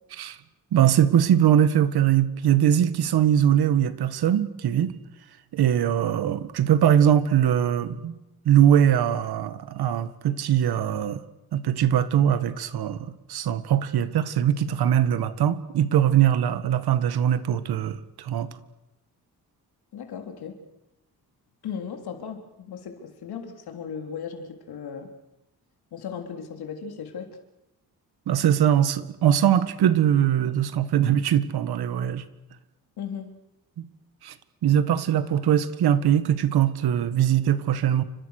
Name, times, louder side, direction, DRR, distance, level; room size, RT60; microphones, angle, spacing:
voice 1, 0.7-4.9 5.5-8.1 8.5-11.2 11.5-18.5 28.3-32.2 33.8-33.9 34.2-34.3 34.6-38.0, right 10 dB, 85° right, 12 dB, 1.9 m, -21 dB
voice 2, 19.9-20.6 21.6-25.1 25.9-27.4 33.0-33.4, left 7 dB, 90° left, 5 dB, 3.7 m, -36 dB
29.5 x 26.0 x 6.6 m, 0.94 s
wide cardioid pair, 165°, 37 cm